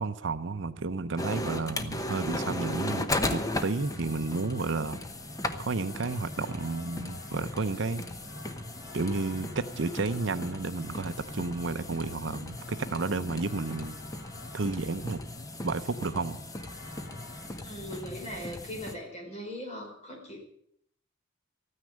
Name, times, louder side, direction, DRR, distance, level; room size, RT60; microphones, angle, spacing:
voice 1, 0.0-3.1 3.3-5.0 5.6-8.0 8.9-14.0 14.5-15.2 15.6-16.4, right 3 dB, 60° right, 11 dB, 0.7 m, -32 dB
sound 1, 1.2-18.9, left 1 dB, 15° left, 0.9 m, -37 dB
sound 2, 2.0-17.5, left 2 dB, 55° left, 7.7 m, -52 dB
voice 2, 17.6-20.4, equal, 30° left, 0 dB, 4.9 m, -40 dB
14.5 x 9.7 x 8.6 m, 0.70 s
head